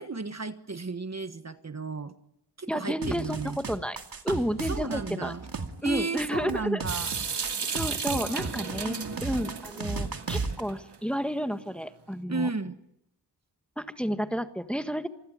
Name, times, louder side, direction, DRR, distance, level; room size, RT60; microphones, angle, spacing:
voice 1, 0.0-2.1 2.6-3.6 4.3-4.4 4.7-5.5 5.8-7.1 8.1-8.5 8.8-9.2 12.3-12.8, right 4 dB, 40° right, 10 dB, 1.3 m, -34 dB
voice 2, 2.7-4.0 4.2-5.3 5.8-6.8 7.7-12.5 13.8-15.1, equal, 5° left, 8 dB, 1.6 m, -31 dB
sound 1, 3.0-10.6, right 4 dB, 60° right, 2.4 m, -35 dB
Water tap faucet / Sink (filling or washing) / Drip, 6.9-11.0, right 6 dB, 85° right, 2.6 m, -35 dB
27.5 x 21.0 x 9.5 m, 0.81 s
wide cardioid pair, 100°, 41 cm